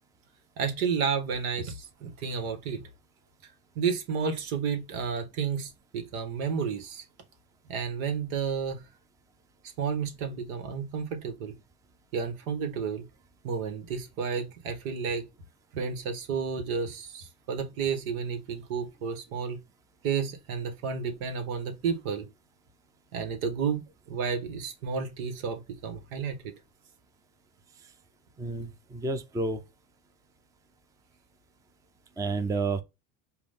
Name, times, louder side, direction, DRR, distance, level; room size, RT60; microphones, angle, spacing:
voice 1, 0.6-2.8 3.7-7.0 7.7-8.8 9.8-11.5 12.1-13.0 13.4-15.2 15.7-19.6 20.0-22.2 23.1-23.8 24.1-26.5, right 6 dB, 80° right, 1.6 m, -31 dB
voice 2, 28.4-29.6 32.2-32.8, right 3 dB, 10° right, 0.5 m, -30 dB
4.9 x 2.6 x 3.6 m
supercardioid pair, 120°, 42 cm